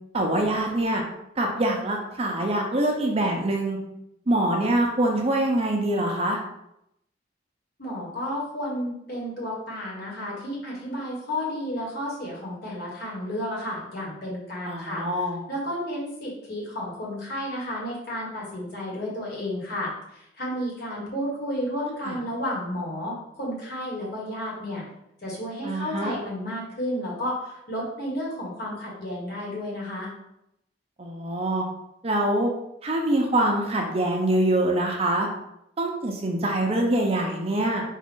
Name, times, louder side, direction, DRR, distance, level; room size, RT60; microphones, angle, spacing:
voice 1, 0.1-1.0 1.4-3.8 4.3-6.4 14.6-15.4 22.0-22.2 25.6-26.1 31.0-31.6 32.0-32.5 32.8-35.3 35.8-37.8, right 1 dB, 35° right, 1 dB, 0.6 m, -24 dB
voice 2, 7.8-15.0 15.5-24.8 25.2-30.1, equal, 55° left, -4 dB, 1.6 m, -32 dB
4.4 x 2.5 x 3.6 m, 0.80 s
head